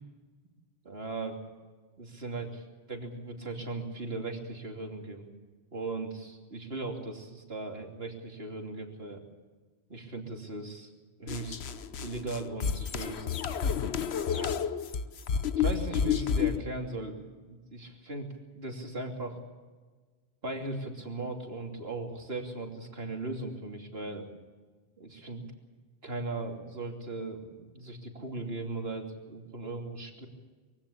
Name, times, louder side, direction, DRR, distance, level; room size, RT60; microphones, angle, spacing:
voice 1, 0.8-1.4 2.0-2.5 2.9-5.3 5.7-9.2 9.9-10.9 11.2-11.6 12.0-13.3 14.2-14.6 15.6-19.4 20.4-24.3 25.0-25.5 26.0-30.3, right 2 dB, 65° right, 2 dB, 3.2 m, -38 dB
sound 1, 11.3-16.6, left 7 dB, 75° left, 1.1 m, -30 dB
23.0 x 16.5 x 8.6 m, 1.4 s
omnidirectional pair, 1.1 m